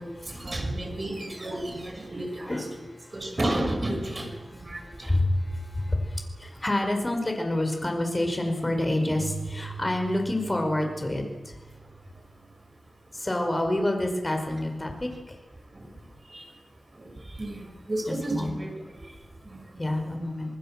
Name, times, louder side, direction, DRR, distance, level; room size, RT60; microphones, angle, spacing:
voice 1, 0.0-2.7 3.0-6.0 9.7-9.8 11.7-13.3 14.5-14.6 15.6-19.8 20.4-20.6, right 1 dB, 30° right, 4 dB, 5.9 m, -34 dB
voice 2, 2.5-3.1 5.1-11.5 13.1-15.3 18.1-18.5 19.8-20.5, left 1 dB, 20° left, 4 dB, 5.0 m, -28 dB
Keyboard (musical), 9.1-12.7, right 5 dB, 70° right, 3.7 m, -41 dB
26.5 x 20.0 x 7.6 m, 1.2 s
wide cardioid pair, 105°, 0 cm